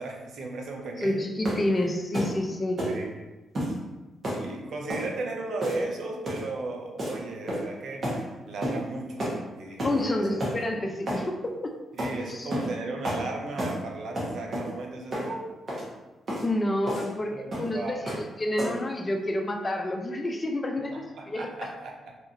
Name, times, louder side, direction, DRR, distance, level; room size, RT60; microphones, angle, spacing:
voice 1, 0.0-1.2 1.5-1.7 2.9-3.2 4.3-10.3 11.9-15.4 16.8-16.9 17.3-18.1 20.9-22.2, right 2 dB, 70° right, 1 dB, 0.5 m, -36 dB
voice 2, 1.0-2.8 9.8-11.7 12.3-12.5 16.4-21.7, left 1 dB, 35° left, 3 dB, 0.4 m, -29 dB
sound 1, 1.4-1.7 2.1-2.4 2.8-3.0 3.6-3.8 4.2-4.5 4.9-5.1 5.6-5.9 6.3-6.5 7.0-7.2 7.5-7.7 8.0-8.2 8.6-8.8 9.2-9.4 9.8-10.0 10.4-10.6 11.1-11.3 12.0-12.1 12.5-12.7 13.0-13.2 13.6-13.8 14.2-14.7 15.1-15.3 15.7-15.9 16.3-16.5 16.9-17.1 17.5-17.7 18.1-18.3 18.6-18.9, equal, 50° right, 1.1 m, -30 dB
2.8 x 2.4 x 2.6 m, 1.1 s
supercardioid pair, 55°, 0 cm